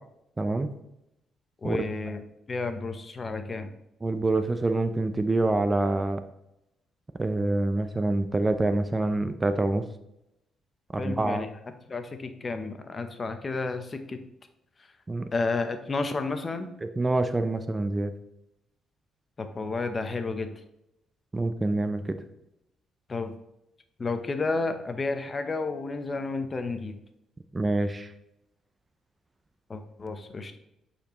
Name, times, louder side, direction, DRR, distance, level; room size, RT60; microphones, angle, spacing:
voice 1, 0.4-0.7 1.6-1.8 4.0-6.2 7.2-9.9 10.9-11.4 15.1-15.3 16.8-18.1 21.3-22.2 27.5-28.1, right 2 dB, 20° right, 10 dB, 0.5 m, -26 dB
voice 2, 1.6-2.2 2.5-3.7 11.0-11.5 11.9-14.2 15.3-16.7 19.4-20.6 23.1-23.3 24.0-27.0 29.7-30.6, left 3 dB, 35° left, 8 dB, 0.7 m, -31 dB
8.4 x 4.3 x 3.0 m, 0.85 s
cardioid pair, 90°, 0 cm